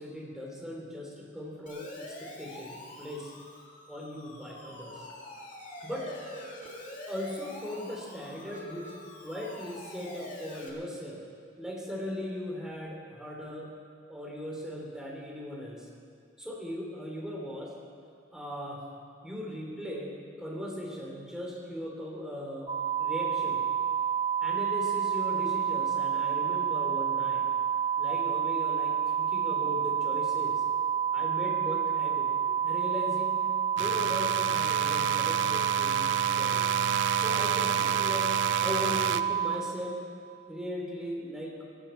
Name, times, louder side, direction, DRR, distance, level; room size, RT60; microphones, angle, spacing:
voice 1, 0.0-3.3 3.9-5.1 5.8-6.1 7.1-8.9 9.2-11.2 11.6-13.7 14.1-15.9 16.4-17.7 18.3-18.8 19.2-22.7 23.0-23.6 24.4-27.4 28.0-30.6 31.1-32.4 32.6-33.4 33.8-36.7 37.1-38.3 38.6-40.0 40.5-41.6, equal, 5° right, -3 dB, 3.1 m, -38 dB
Siren, 1.7-10.7, left 1 dB, 45° left, 2.3 m, -45 dB
sound 1, 22.7-39.5, right 8 dB, 25° right, 0.8 m, -29 dB
sound 2, 33.8-39.2, right 8 dB, 85° right, 0.5 m, -31 dB
17.5 x 16.0 x 4.4 m, 2.2 s
head